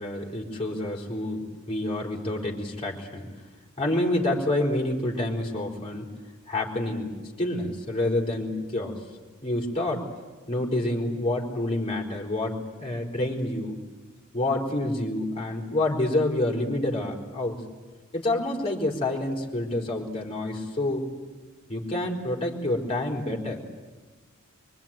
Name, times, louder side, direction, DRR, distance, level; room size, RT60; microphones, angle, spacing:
voice 1, 0.0-3.3 3.8-6.1 6.5-7.1 7.4-9.0 9.4-10.1 10.5-13.8 14.3-17.6 18.1-21.1 21.7-23.6, left 1 dB, 25° left, -1 dB, 4.7 m, -28 dB
24.5 x 24.0 x 9.2 m, 1.3 s
head